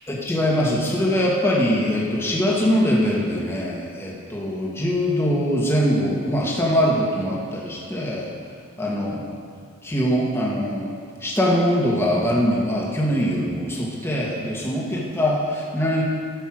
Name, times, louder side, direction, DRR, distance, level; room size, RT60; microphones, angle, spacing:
voice 1, 0.1-8.3 8.8-9.4 9.8-10.9 11.2-16.0, equal, 10° left, -4 dB, 2.0 m, -22 dB
12.0 x 7.0 x 6.3 m, 2.2 s
head